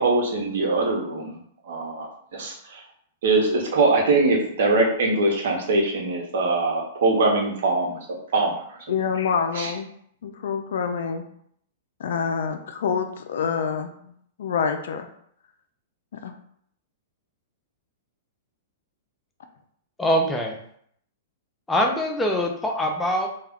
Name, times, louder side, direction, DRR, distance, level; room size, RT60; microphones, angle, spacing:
voice 1, 0.0-1.4 1.6-2.8 3.2-8.0 8.3-8.6 9.5-9.7, right 3 dB, 70° right, 0 dB, 0.8 m, -22 dB
voice 2, 8.9-9.9 10.2-11.2 12.0-14.1 14.4-15.1 16.1-16.3, left 6 dB, 75° left, 7 dB, 0.4 m, -26 dB
voice 3, 20.0-20.6 21.7-23.3, equal, 10° left, 1 dB, 0.4 m, -23 dB
2.3 x 2.2 x 3.5 m, 0.67 s
hypercardioid pair, 140°, 0 cm